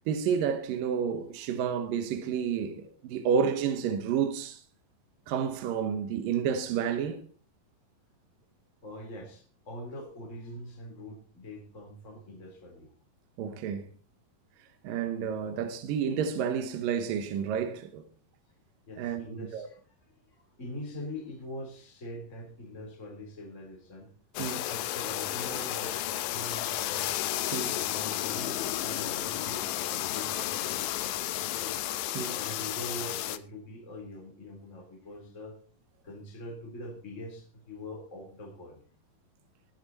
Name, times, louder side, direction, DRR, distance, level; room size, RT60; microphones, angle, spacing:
voice 1, 0.1-4.6 5.3-7.2 13.4-13.9 14.8-18.1 19.0-19.7 24.4-24.7 27.5-27.8 32.1-32.4, right 7 dB, 70° right, 2.8 m, -30 dB
voice 2, 8.8-12.9 18.9-19.8 20.1-24.1 24.7-27.2 27.7-32.0 32.3-35.6 36.0-38.8, left 1 dB, 20° left, 3.8 m, -43 dB
sound 1, 24.3-33.4, left 13 dB, 85° left, 1.7 m, -32 dB
21.0 x 7.9 x 4.2 m
omnidirectional pair, 4.2 m